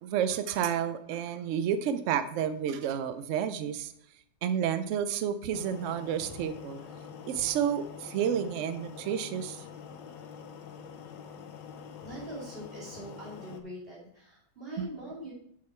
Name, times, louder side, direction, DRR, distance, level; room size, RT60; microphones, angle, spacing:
voice 1, 0.0-3.9 4.4-6.8 7.3-9.7 14.8-14.9, right 8 dB, 90° right, 11 dB, 0.6 m, -30 dB
sound 1, 5.5-13.6, left 7 dB, 85° left, 1.4 m, -46 dB
voice 2, 12.0-15.3, right 1 dB, 30° right, -6 dB, 2.9 m, -43 dB
7.4 x 6.4 x 4.3 m, 0.71 s
omnidirectional pair, 1.9 m